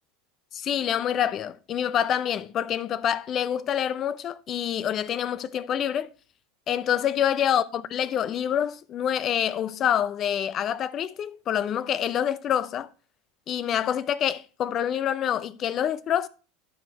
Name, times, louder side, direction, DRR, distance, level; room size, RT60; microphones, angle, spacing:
voice 1, 0.5-6.1 6.7-12.9 13.5-16.3, left 9 dB, 40° left, 0.6 m, -26 dB
12.5 x 5.1 x 3.4 m
hypercardioid pair, 80°, 0 cm